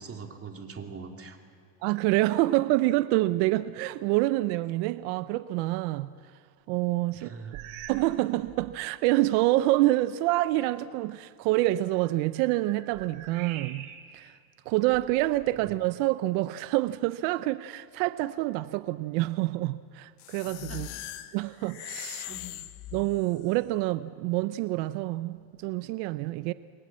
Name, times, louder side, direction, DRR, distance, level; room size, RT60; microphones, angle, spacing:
voice 1, 0.0-1.4 7.2-7.6 20.7-20.9 22.3-22.5, right 5 dB, 25° right, 2.9 m, -42 dB
voice 2, 1.8-6.1 6.7-7.3 7.9-13.9 14.1-14.3 14.7-20.9 21.3-22.3 22.9-26.5, right 17 dB, 85° right, 0.8 m, -27 dB
sound 1, 7.5-8.2 8.4-8.8 9.5-9.6 11.9-14.3 14.8-15.8, right 10 dB, 70° right, 3.0 m, -46 dB
sound 2, 20.2-23.4, left 14 dB, 70° left, 1.6 m, -40 dB
29.0 x 23.0 x 7.5 m
cardioid pair, 120°, 50 cm